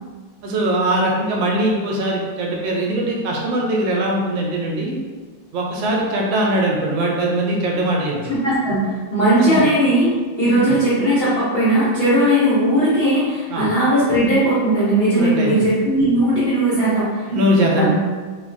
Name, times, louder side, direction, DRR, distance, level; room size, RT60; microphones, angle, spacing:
voice 1, 0.4-5.0 5.5-8.3 9.4-9.6 10.7-10.8 13.5-13.7 15.2-15.5 17.3-17.9, right 1 dB, 85° right, -1 dB, 1.4 m, -21 dB
voice 2, 8.3-10.1 10.4-17.2 17.8-17.9, right 1 dB, 70° left, -10 dB, 0.5 m, -17 dB
3.5 x 2.1 x 2.5 m, 1.5 s
omnidirectional pair, 2.0 m